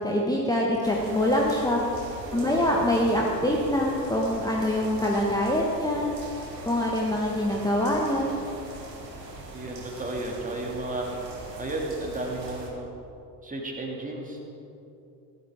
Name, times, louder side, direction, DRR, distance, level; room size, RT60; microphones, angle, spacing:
voice 1, 0.0-1.8 2.3-6.1 6.6-8.3, left 1 dB, 10° left, -2 dB, 1.3 m, -24 dB
sound 1, 0.8-12.7, right 2 dB, 80° right, 1.6 m, -41 dB
voice 2, 2.2-2.7 9.5-11.1 11.6-12.9 13.4-14.4, right 2 dB, 15° right, -1 dB, 2.4 m, -33 dB
15.5 x 11.5 x 3.7 m, 2.7 s
figure-of-eight pair, 55°, 48 cm